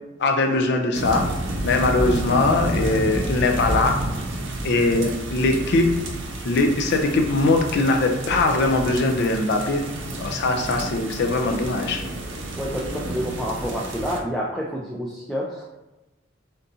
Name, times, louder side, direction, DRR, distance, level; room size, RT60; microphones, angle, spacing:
voice 1, 0.2-1.3 1.6-3.9 4.6-5.9 6.4-9.8 10.2-12.0, left 2 dB, 60° left, 4 dB, 0.5 m, -21 dB
sound 1, 0.9-14.2, right 1 dB, 65° right, 0.6 m, -30 dB
voice 2, 12.6-15.6, equal, ahead, -5 dB, 0.4 m, -28 dB
3.9 x 3.6 x 2.7 m, 1.0 s
head